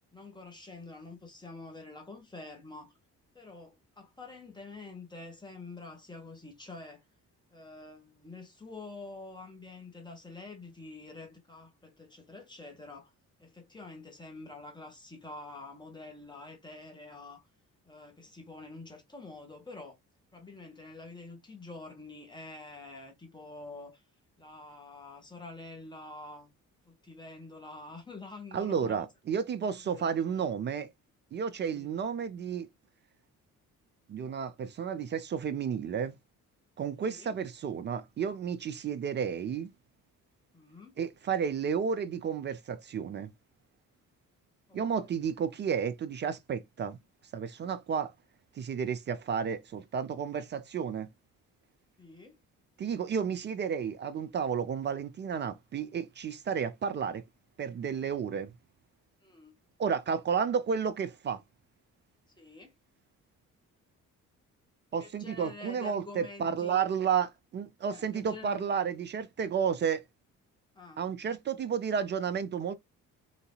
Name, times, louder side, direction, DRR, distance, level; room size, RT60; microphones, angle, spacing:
voice 1, 0.1-2.9 3.3-7.0 7.5-13.1 13.4-17.4 17.8-20.0 20.3-24.0 24.4-26.6 26.9-29.0 29.6-30.4 31.7-31.9 37.0-37.3 40.5-40.9 44.7-45.3 47.6-47.7 52.0-52.4 59.2-59.5 62.4-62.7 65.0-66.8 67.9-68.8 70.7-71.0, left 3 dB, 10° left, 1.5 m, -47 dB
voice 2, 28.5-30.9 31.3-32.7 34.1-36.1 36.8-39.7 41.0-43.3 44.7-47.0 47.3-48.1 48.5-51.1 52.8-57.2 57.6-58.5 59.8-61.4 64.9-70.0 71.0-72.7, right 7 dB, 25° right, 0.4 m, -32 dB
4.0 x 2.6 x 2.3 m
figure-of-eight pair, 40°, 45 cm